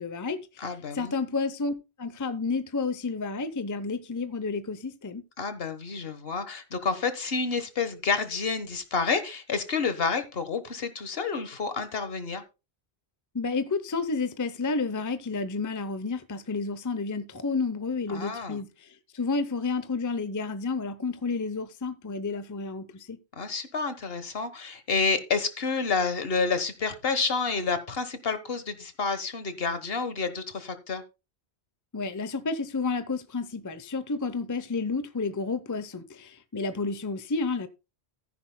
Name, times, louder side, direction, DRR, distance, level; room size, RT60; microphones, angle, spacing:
voice 1, 0.0-0.7 0.9-5.2 13.3-23.2 31.9-37.7, left 4 dB, 20° left, 0.6 m, -31 dB
voice 2, 0.6-1.1 5.4-12.4 18.1-18.6 23.4-31.0, left 4 dB, 60° left, 1.5 m, -29 dB
14.0 x 10.5 x 2.2 m
omnidirectional pair, 1.1 m